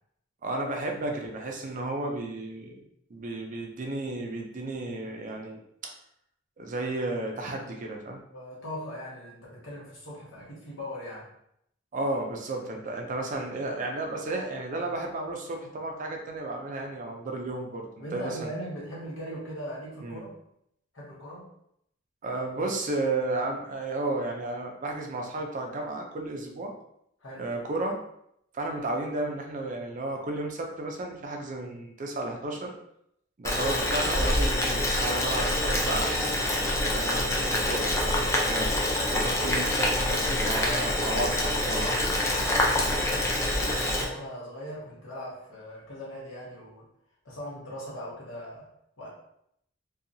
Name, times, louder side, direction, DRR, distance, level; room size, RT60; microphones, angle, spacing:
voice 1, 0.4-2.8 3.1-5.6 6.6-8.2 11.9-18.5 20.0-20.2 22.2-26.7 27.4-28.0 28.5-32.7 33.4-36.4 36.9-38.7 39.1-42.1, right 2 dB, 40° right, 1 dB, 0.4 m, -33 dB
voice 2, 8.3-11.3 18.0-20.3 20.9-21.5 27.2-27.5 42.3-46.9 47.2-48.7 49.0-49.1, equal, 75° left, -5 dB, 1.1 m, -40 dB
Boiling, 33.4-44.1, left 1 dB, 15° left, 0.4 m, -26 dB
2.7 x 2.3 x 2.5 m, 0.74 s
head